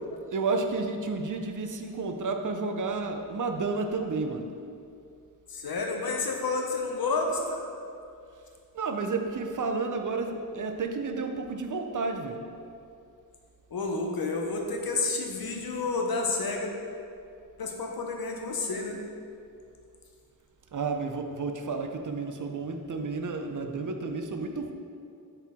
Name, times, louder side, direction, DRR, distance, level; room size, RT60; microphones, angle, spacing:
voice 1, 0.3-4.5 8.7-12.4 20.7-24.7, right 4 dB, 55° right, 5 dB, 0.6 m, -31 dB
voice 2, 5.5-7.6 13.7-16.7 17.6-19.0, left 3 dB, 70° left, 2 dB, 0.9 m, -30 dB
7.7 x 4.5 x 3.6 m, 2.5 s
wide cardioid pair, 115°, 38 cm